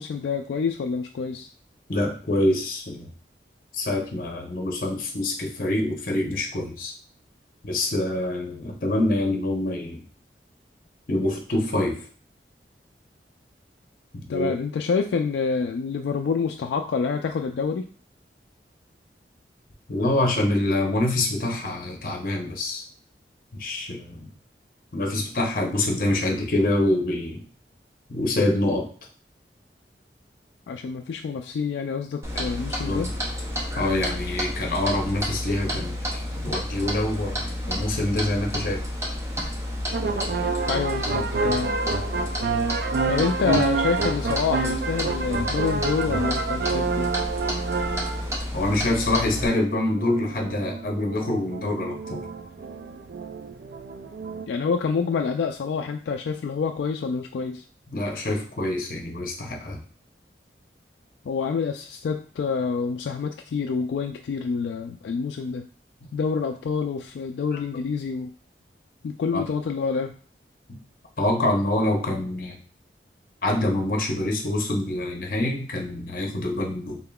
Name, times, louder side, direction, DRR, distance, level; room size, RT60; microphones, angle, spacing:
voice 1, 0.0-1.5 14.3-17.8 30.7-33.1 40.7-41.7 43.1-47.1 54.5-57.6 61.3-65.6 66.1-68.3 69.0-70.1, left 5 dB, 80° left, 4 dB, 0.3 m, -27 dB
voice 2, 1.9-3.1 3.7-6.9 7.6-10.0 11.1-12.0 14.1-14.5 19.9-22.8 23.5-24.3 24.9-27.4 28.1-28.9 32.8-33.1 33.8-38.8 43.5-43.6 48.5-52.3 57.9-59.8 66.0-66.1 67.5-67.6 69.3-69.4 70.7-70.8 71.2-72.6 73.4-77.0, left 1 dB, 50° left, 1 dB, 0.8 m, -26 dB
Clock, 32.2-49.5, equal, 15° right, 0.6 m, -31 dB
sound 1, 39.9-48.3 48.8-54.5, right 4 dB, 60° right, 0.4 m, -29 dB
3.7 x 3.7 x 2.3 m, 0.42 s
head